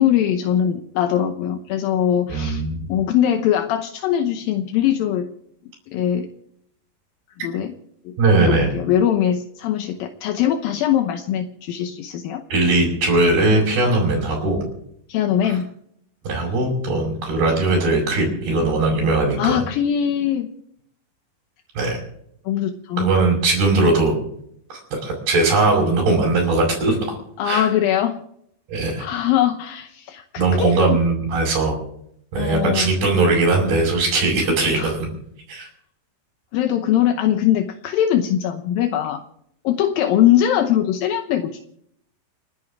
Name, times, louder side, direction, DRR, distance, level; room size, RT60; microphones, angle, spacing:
voice 1, 0.0-2.6 2.9-5.3 5.9-6.3 7.4-7.7 8.1-8.2 8.5-12.4 15.1-15.6 19.4-20.5 22.5-23.1 27.4-28.2 29.0-31.0 32.4-33.0 34.7-34.9 36.5-39.2 39.6-41.6, left 10 dB, 75° left, 6 dB, 2.6 m, -21 dB
voice 2, 2.3-2.8 8.2-8.7 12.5-14.6 15.4-15.6 16.3-19.6 21.8-22.0 23.0-24.2 24.7-27.2 27.5-27.7 28.7-29.0 30.4-31.7 32.3-35.1 35.5-35.7, right 2 dB, 85° right, -5 dB, 6.9 m, -19 dB
30.0 x 11.5 x 3.6 m, 0.70 s
omnidirectional pair, 4.3 m